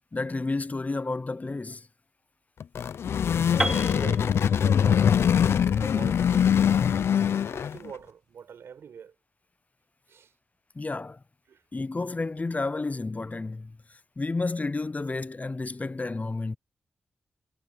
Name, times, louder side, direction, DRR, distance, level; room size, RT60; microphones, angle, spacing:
voice 1, 0.0-1.9 10.7-11.2 11.7-16.6, left 3 dB, 35° left, 0.7 m, -31 dB
sound 1, 2.6-7.9, left 8 dB, 80° left, 0.6 m, -23 dB
voice 2, 3.2-5.3 5.6-7.1 7.5-9.1 10.1-10.3 11.5-11.6, right 7 dB, 80° right, 4.9 m, -44 dB
Piano, 3.6-7.5, right 1 dB, 10° right, 0.7 m, -34 dB
supercardioid pair, 40°, 4 cm